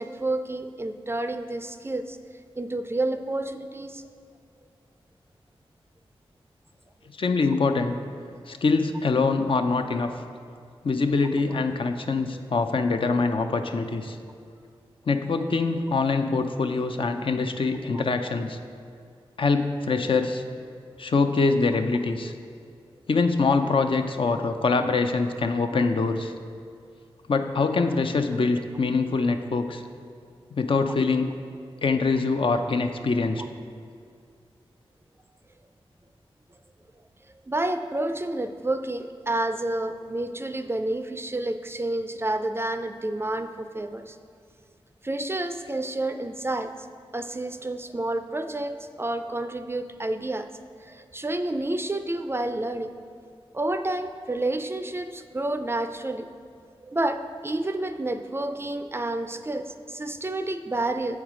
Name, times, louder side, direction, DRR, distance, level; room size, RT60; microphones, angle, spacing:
voice 1, 0.0-2.2 2.6-4.0 12.3-12.4 17.9-18.0 37.5-44.2 45.0-46.7 47.1-50.5 50.8-52.9 53.5-56.3 56.8-61.2, right 2 dB, 25° right, 9 dB, 0.4 m, -29 dB
voice 2, 7.2-7.9 8.5-10.1 10.8-14.2 15.1-18.6 19.4-20.4 21.0-22.3 23.1-26.3 27.3-29.8 30.6-31.3 31.8-33.4, left 4 dB, 60° left, 6 dB, 0.5 m, -24 dB
7.3 x 4.6 x 5.0 m, 2.3 s
cardioid pair, 45°, 10 cm